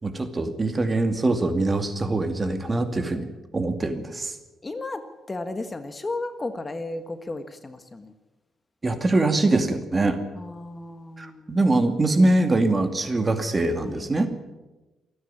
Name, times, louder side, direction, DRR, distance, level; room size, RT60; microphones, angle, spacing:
voice 1, 0.0-4.4 8.8-10.2 11.2-14.3, right 2 dB, 25° right, 8 dB, 2.4 m, -23 dB
voice 2, 2.4-3.3 4.6-8.1 10.3-11.6 13.8-14.3, left 2 dB, 25° left, 9 dB, 1.5 m, -35 dB
28.0 x 9.7 x 9.9 m, 1.1 s
cardioid pair, 90°, 0 cm